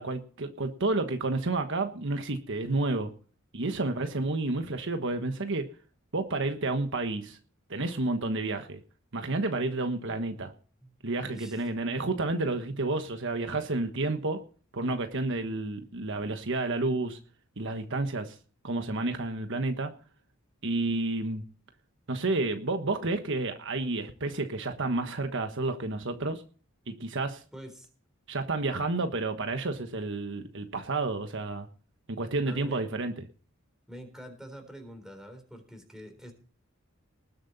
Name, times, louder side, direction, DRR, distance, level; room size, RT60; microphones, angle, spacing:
voice 1, 0.0-3.1 3.5-5.7 6.1-7.4 7.7-8.8 9.1-10.5 11.0-14.4 14.7-17.2 17.6-18.3 18.6-19.9 20.6-21.4 22.1-26.4 26.9-27.4 28.3-31.7 32.1-33.1, right 2 dB, 65° right, 7 dB, 1.3 m, -30 dB
voice 2, 11.3-11.7 27.5-27.9 32.5-32.9 33.9-36.3, equal, 5° right, 5 dB, 3.9 m, -46 dB
19.5 x 7.8 x 4.1 m, 0.39 s
head